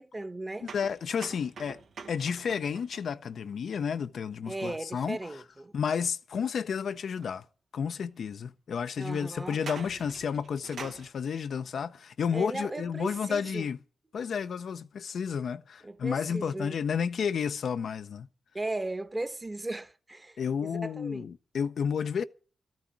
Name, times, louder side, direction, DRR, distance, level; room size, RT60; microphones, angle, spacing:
voice 1, 0.0-0.7 4.5-5.7 9.0-9.6 12.3-13.7 15.8-16.8 18.5-20.4 20.6-21.3, right 2 dB, 25° right, 1.1 m, -37 dB
voice 2, 0.6-1.8 2.1-5.2 5.7-7.5 7.7-13.8 14.1-18.3 20.4-22.2, left 7 dB, 75° left, 0.6 m, -31 dB
sound 1, 0.7-4.4 7.2-7.3 8.2-8.3 9.4-11.1, right 5 dB, 75° right, 1.1 m, -46 dB
13.0 x 6.2 x 9.7 m
cardioid pair, 60°, 0 cm